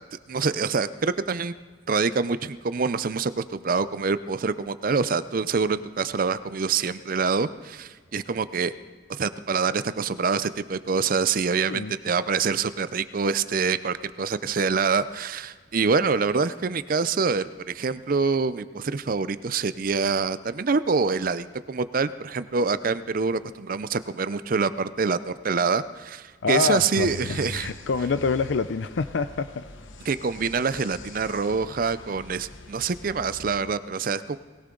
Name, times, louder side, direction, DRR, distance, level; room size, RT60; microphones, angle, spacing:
voice 1, 0.3-1.6 1.9-8.7 9.1-27.7 30.1-34.4, right 5 dB, 45° right, 14 dB, 0.5 m, -26 dB
voice 2, 26.4-27.1 27.5-29.6, left 4 dB, 70° left, 11 dB, 0.5 m, -26 dB
sound 1, 27.0-33.5, left 2 dB, 90° left, 1.2 m, -42 dB
20.5 x 16.5 x 3.9 m, 1.5 s
head